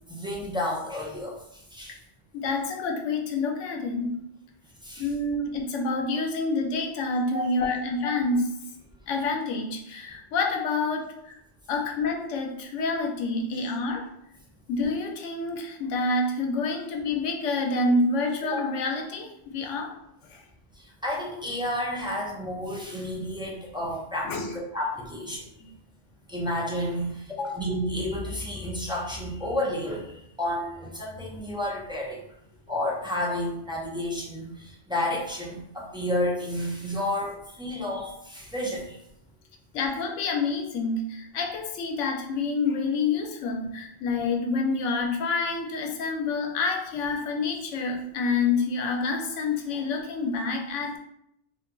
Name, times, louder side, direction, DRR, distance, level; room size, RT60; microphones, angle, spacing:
voice 1, 0.1-1.4 1.7-2.0 4.8-5.1 7.3-7.5 20.8-25.4 26.3-32.2 32.7-39.0, left 1 dB, 5° right, -5 dB, 0.4 m, -31 dB
voice 2, 2.3-4.2 5.0-8.5 9.1-11.4 11.7-14.1 14.7-19.9 20.2-20.4 24.2-24.6 27.3-27.6 39.7-51.0, left 3 dB, 90° left, 2 dB, 0.9 m, -28 dB
3.0 x 2.2 x 3.7 m, 0.77 s
omnidirectional pair, 1.2 m